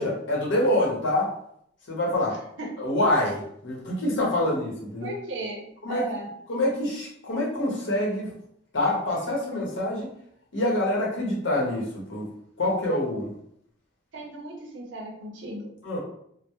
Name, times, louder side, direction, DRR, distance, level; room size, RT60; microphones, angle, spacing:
voice 1, 0.0-1.3 1.9-2.4 2.8-5.1 5.8-6.0 6.5-8.3 8.7-10.1 10.5-12.3 12.6-13.3 15.8-16.0, left 1 dB, 75° left, -2 dB, 0.8 m, -26 dB
voice 2, 5.0-6.3 7.3-7.4 14.1-15.7, right 1 dB, 70° right, 0 dB, 0.6 m, -35 dB
2.1 x 2.0 x 2.9 m, 0.70 s
head